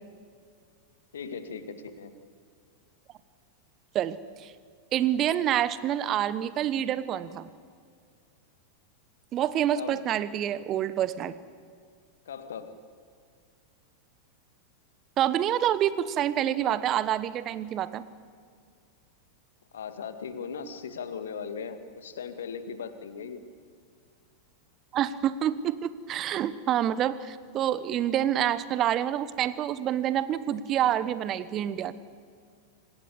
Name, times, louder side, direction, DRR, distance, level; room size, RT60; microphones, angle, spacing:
voice 1, 1.1-2.1 9.7-10.0 12.3-12.7 19.7-23.4, left 6 dB, 65° left, 10 dB, 2.1 m, -38 dB
voice 2, 3.9-4.5 4.9-7.5 9.3-11.3 15.2-18.0 24.9-31.9, right 11 dB, 30° right, 16 dB, 1.2 m, -27 dB
26.5 x 19.0 x 8.4 m, 2.1 s
figure-of-eight pair, 90°, 0 cm